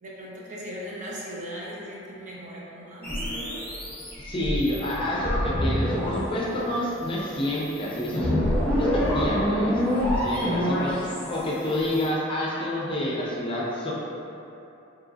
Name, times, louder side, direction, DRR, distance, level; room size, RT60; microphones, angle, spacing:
voice 1, 0.0-3.6, equal, 40° right, -6 dB, 0.7 m, -38 dB
sound 1, 3.0-12.1, equal, 10° left, 0.9 m, -27 dB
voice 2, 4.2-8.3 8.8-9.7 10.2-13.9, left 1 dB, 25° left, -5 dB, 0.5 m, -28 dB
4.8 x 3.0 x 2.5 m, 2.9 s
head